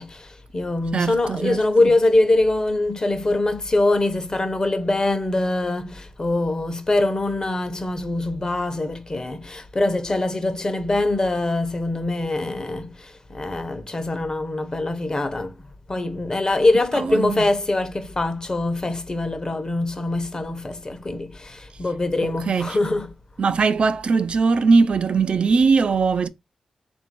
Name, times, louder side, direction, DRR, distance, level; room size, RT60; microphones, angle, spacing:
voice 1, 0.0-15.6 15.9-23.1, left 2 dB, 35° left, 0.8 m, -23 dB
voice 2, 0.9-1.9 16.9-17.5 22.2-22.8 23.4-26.3, right 4 dB, 60° right, 0.4 m, -20 dB
3.5 x 2.6 x 4.4 m
cardioid pair, 65°, 2 cm